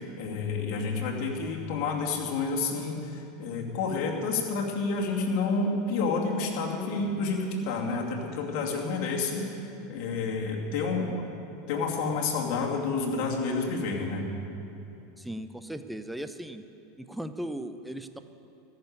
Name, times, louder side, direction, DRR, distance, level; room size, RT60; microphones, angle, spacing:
voice 1, 0.0-9.5 9.9-11.2 11.7-14.2, left 4 dB, 60° left, -1 dB, 2.5 m, -29 dB
voice 2, 15.2-16.6 17.0-18.2, right 1 dB, 5° right, 9 dB, 0.7 m, -37 dB
14.0 x 6.9 x 9.8 m, 2.9 s
hypercardioid pair, 95°, 0 cm